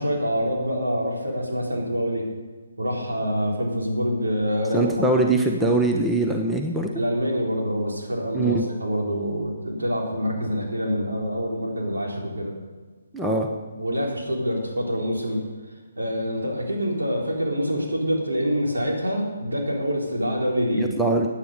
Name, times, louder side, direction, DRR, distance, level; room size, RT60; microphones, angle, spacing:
voice 1, 0.0-2.3 2.8-4.9 7.0-12.5 13.8-15.4 16.0-20.9, equal, 70° right, -2 dB, 4.0 m, -26 dB
voice 2, 4.7-6.9 8.3-8.6 13.1-13.5 20.7-21.3, right 2 dB, 5° right, 1 dB, 0.9 m, -22 dB
16.5 x 9.8 x 5.1 m, 1.4 s
figure-of-eight pair, 140°, 0 cm